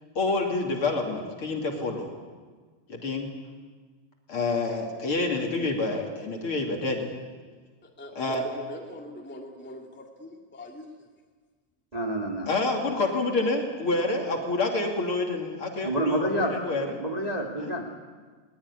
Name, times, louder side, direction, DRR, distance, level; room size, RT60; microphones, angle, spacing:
voice 1, 0.1-2.1 2.9-3.3 4.3-7.1 8.1-8.4 12.4-17.0 17.6-17.7, left 3 dB, 35° left, 1 dB, 2.9 m, -28 dB
voice 2, 7.8-11.1, left 1 dB, 10° left, 0 dB, 0.4 m, -42 dB
voice 3, 11.9-12.5 15.8-17.9, right 1 dB, 35° right, -1 dB, 0.6 m, -29 dB
20.5 x 20.5 x 9.9 m, 1.5 s
omnidirectional pair, 5.1 m